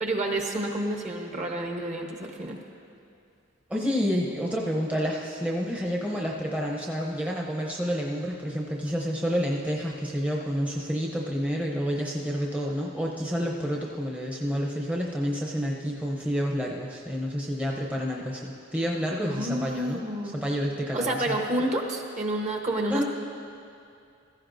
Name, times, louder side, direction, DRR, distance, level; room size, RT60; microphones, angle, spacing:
voice 1, 0.0-2.6 19.2-20.4 20.9-23.0, right 1 dB, 35° right, 1 dB, 1.0 m, -29 dB
voice 2, 3.7-20.0 20.3-21.3 22.9-23.0, equal, 5° right, -2 dB, 0.7 m, -29 dB
16.0 x 14.5 x 2.6 m, 2.5 s
head